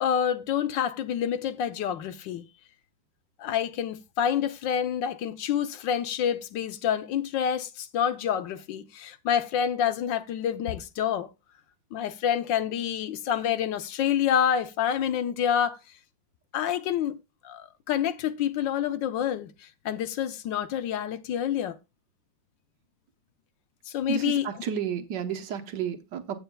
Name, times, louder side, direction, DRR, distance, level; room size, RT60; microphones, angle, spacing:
voice 1, 0.0-2.5 3.4-11.3 11.9-15.8 16.5-17.1 17.4-21.8 23.9-24.6, left 9 dB, 75° left, 1.5 m, -28 dB
voice 2, 24.1-26.4, right 8 dB, 65° right, 1.7 m, -31 dB
15.5 x 8.0 x 2.3 m
omnidirectional pair, 2.1 m